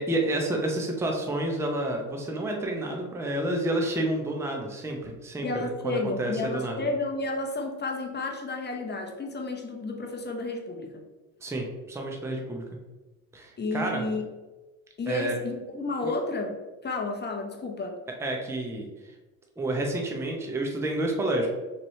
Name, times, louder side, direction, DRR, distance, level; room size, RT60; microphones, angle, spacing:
voice 1, 0.0-6.9 11.4-12.6 13.3-14.1 15.1-15.4 16.0-16.1 18.2-18.9 19.6-21.5, right 1 dB, 5° right, 1 dB, 0.7 m, -29 dB
voice 2, 5.4-11.0 13.6-14.3 15.0-16.5 16.8-18.0, left 2 dB, 25° left, 2 dB, 0.7 m, -31 dB
4.2 x 3.1 x 3.1 m, 1.2 s
supercardioid pair, 90°, 39 cm